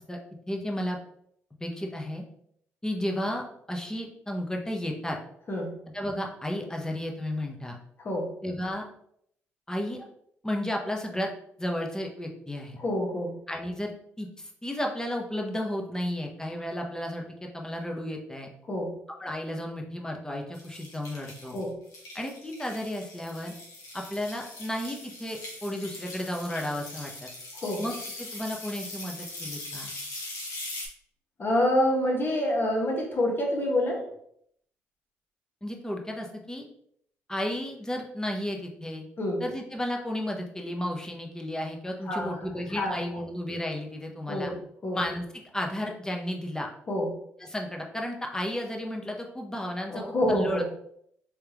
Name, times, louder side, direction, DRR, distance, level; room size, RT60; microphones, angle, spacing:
voice 1, 0.5-1.0 1.6-2.2 2.8-5.2 5.9-7.8 8.4-8.8 9.7-10.0 10.4-11.3 11.6-12.8 13.5-13.9 14.2-18.5 19.2-21.6 22.1-23.5 23.9-27.3 27.8-29.9 35.6-36.6 37.3-39.0 39.4-44.5 44.9-45.2 45.5-46.7 47.4-50.6, left 1 dB, 10° left, 1 dB, 0.9 m, -33 dB
voice 2, 12.8-13.3 18.7-18.9 21.5-21.7 27.5-27.8 31.4-34.0 39.2-39.4 42.1-42.4 42.7-43.0 44.3-44.6 44.8-45.0 46.9-47.1 49.9-50.6, left 1 dB, 40° left, 0 dB, 1.4 m, -27 dB
sound 1, 20.5-30.9, left 2 dB, 65° left, 1.3 m, -41 dB
3.5 x 3.3 x 3.0 m, 0.70 s
hypercardioid pair, 55°, 6 cm